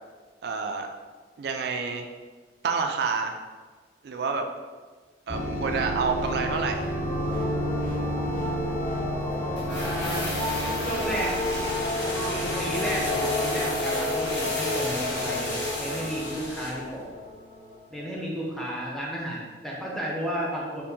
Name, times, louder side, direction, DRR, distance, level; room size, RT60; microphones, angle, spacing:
voice 1, 0.4-0.9 1.4-2.1 2.6-3.4 4.0-4.5 5.3-6.9, right 5 dB, 60° right, 5 dB, 0.3 m, -28 dB
sound 1, 5.3-17.0, equal, 50° left, 0.7 m, -33 dB
sound 2, 6.2-18.0, left 2 dB, 25° left, 1.0 m, -32 dB
sound 3, 9.6-16.9 17.1-17.2, left 1 dB, 80° left, 0.8 m, -34 dB
voice 2, 9.7-10.3 10.8-11.4 12.0-17.0 17.9-20.8, equal, ahead, -5 dB, 0.6 m, -33 dB
4.3 x 2.1 x 2.7 m, 1.4 s
head